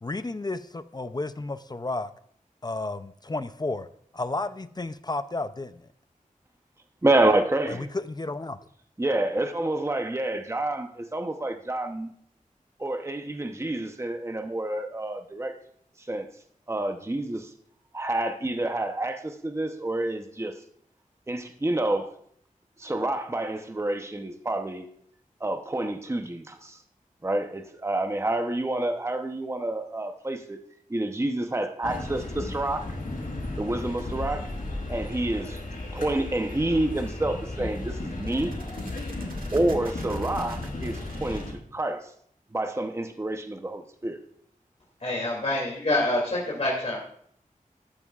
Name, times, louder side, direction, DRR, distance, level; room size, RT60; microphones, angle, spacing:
voice 1, 0.0-2.1 2.6-3.9 4.1-5.9 7.7-8.6, left 2 dB, 30° left, 0.5 m, -32 dB
voice 2, 7.0-7.9 9.0-12.1 12.8-15.5 16.1-16.3 16.7-17.5 17.9-20.5 21.3-22.1 22.8-24.8 25.4-26.8 27.2-30.6 30.9-32.8 33.6-34.5 34.9-38.5 39.5-41.4 41.7-42.1 42.5-44.2, right 2 dB, 20° right, 0.8 m, -28 dB
sound 1, 31.8-41.5, left 2 dB, 80° left, 4.8 m, -34 dB
sound 2, 33.7-34.0 37.2-37.3 37.7-37.8 38.1-41.4, right 3 dB, 85° right, 1.8 m, -49 dB
voice 3, 45.0-47.0, left 1 dB, 50° left, 2.7 m, -26 dB
13.5 x 12.0 x 2.4 m
wide cardioid pair, 90°, 14 cm